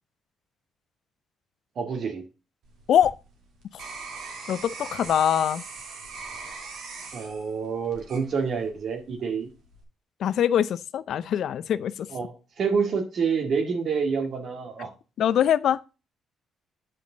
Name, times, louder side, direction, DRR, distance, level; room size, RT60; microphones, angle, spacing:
voice 1, 1.8-2.2 7.1-9.5 12.1-14.9, right 5 dB, 60° right, 1.8 m, -28 dB
sound 1, 2.6-8.8 9.4-9.8, right 4 dB, 80° right, 2.4 m, -41 dB
voice 2, 4.5-5.6 10.2-12.1 15.2-15.8, left 9 dB, 70° left, 0.4 m, -23 dB
8.5 x 5.2 x 3.9 m
cardioid pair, 90°, 0 cm